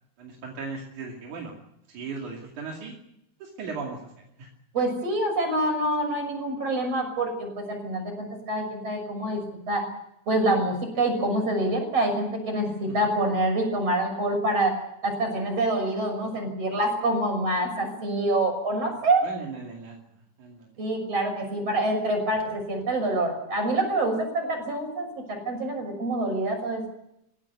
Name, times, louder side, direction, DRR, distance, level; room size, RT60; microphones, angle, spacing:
voice 1, 0.2-1.5 1.9-3.0 3.4-4.1 4.4-4.5 12.9-13.0 19.2-20.7, right 4 dB, 80° right, -1 dB, 4.0 m, -37 dB
voice 2, 4.7-9.4 9.7-9.8 10.3-14.8 15.0-19.2 20.8-26.9, right 1 dB, 55° right, 3 dB, 7.4 m, -26 dB
21.5 x 16.5 x 9.5 m, 0.82 s
omnidirectional pair, 3.4 m